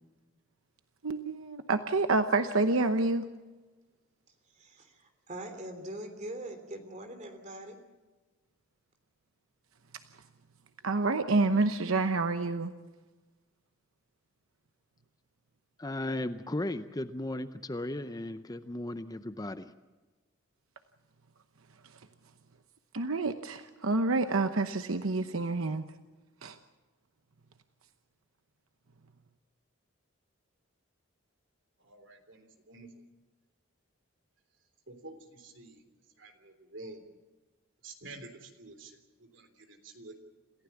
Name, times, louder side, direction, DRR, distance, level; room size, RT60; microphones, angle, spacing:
voice 1, 1.0-3.3 9.9-10.3 10.8-12.7 21.7-22.1 22.9-25.8 26.4-26.6, right 3 dB, 75° right, 9 dB, 0.9 m, -28 dB
voice 2, 4.6-7.8, right 1 dB, 35° right, 6 dB, 3.3 m, -42 dB
voice 3, 15.8-19.7, left 1 dB, 15° left, 11 dB, 0.6 m, -36 dB
voice 4, 31.8-32.9 34.9-35.8 36.2-37.0 37.8-40.1, right 2 dB, 60° right, 7 dB, 3.4 m, -49 dB
27.5 x 15.5 x 7.1 m, 1.2 s
head